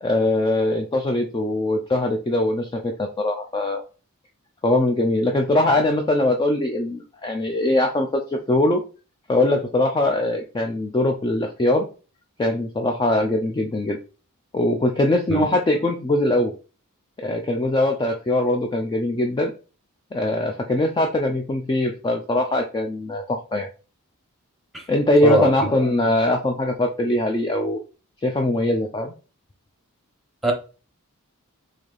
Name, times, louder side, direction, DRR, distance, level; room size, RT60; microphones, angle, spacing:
voice 1, 0.0-3.8 4.6-8.2 8.5-8.8 9.3-11.9 12.4-14.0 14.5-16.5 17.2-19.5 20.1-23.7 24.9-27.8 28.2-29.1, left 1 dB, 20° left, 0.3 m, -22 dB
voice 2, 15.3-15.5 24.7-24.9 25.2-25.5 30.4-30.5, right 2 dB, ahead, 0.9 m, -19 dB
3.9 x 2.7 x 3.2 m
head